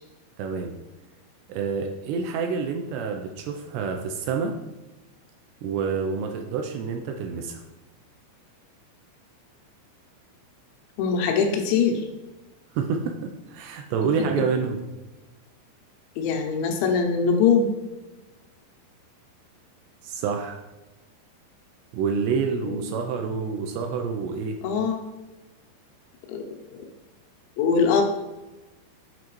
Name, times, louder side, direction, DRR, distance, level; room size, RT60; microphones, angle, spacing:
voice 1, 0.4-0.7 1.5-4.6 5.6-7.6 12.7-14.8 20.0-20.6 21.9-24.6, right 5 dB, 85° right, 4 dB, 2.5 m, -28 dB
voice 2, 11.0-12.0 16.2-17.7 22.6-22.7 24.6-25.0 26.3-26.9 27.6-28.0, left 5 dB, 85° left, 3 dB, 3.1 m, -22 dB
8.2 x 3.8 x 3.1 m, 1.1 s
omnidirectional pair, 5.2 m